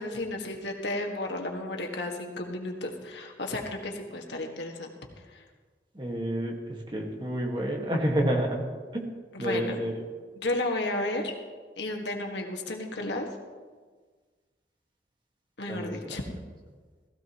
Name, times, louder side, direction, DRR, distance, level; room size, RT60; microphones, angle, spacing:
voice 1, 0.0-4.9 5.3-5.4 9.4-9.8 10.4-11.4 11.8-13.3 15.6-16.2, left 2 dB, 80° left, 2 dB, 1.7 m, -33 dB
voice 2, 5.9-8.6 8.9-9.0 9.4-10.0 15.7-16.2, right 1 dB, 25° right, 0 dB, 1.6 m, -29 dB
16.0 x 15.0 x 3.0 m, 1.5 s
head